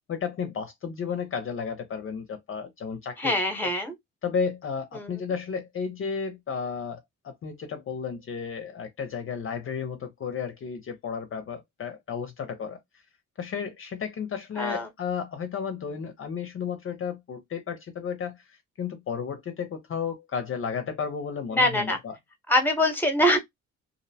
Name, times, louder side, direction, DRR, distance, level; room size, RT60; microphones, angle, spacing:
voice 1, 0.1-3.4 3.6-3.7 4.2-12.8 13.4-22.2, left 6 dB, 45° left, 0.6 m, -33 dB
voice 2, 3.2-3.9 5.0-5.1 14.6-14.9 21.5-22.0 22.5-23.4, left 1 dB, 5° left, 0.9 m, -23 dB
2.6 x 2.0 x 2.7 m
cardioid pair, 90°, 30 cm